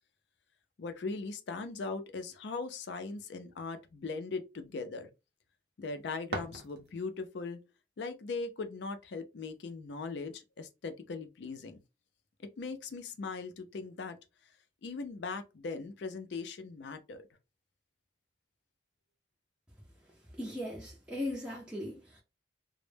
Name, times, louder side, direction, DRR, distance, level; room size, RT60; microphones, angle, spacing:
voice 1, 0.8-5.1 5.8-7.6 8.0-11.8 12.4-14.2 14.8-17.2, left 4 dB, 65° left, 0.4 m, -39 dB
sound 1, 5.8-7.3, right 2 dB, 55° right, 0.5 m, -42 dB
voice 2, 20.4-22.2, left 1 dB, 5° right, 0.4 m, -38 dB
2.0 x 2.0 x 3.2 m
head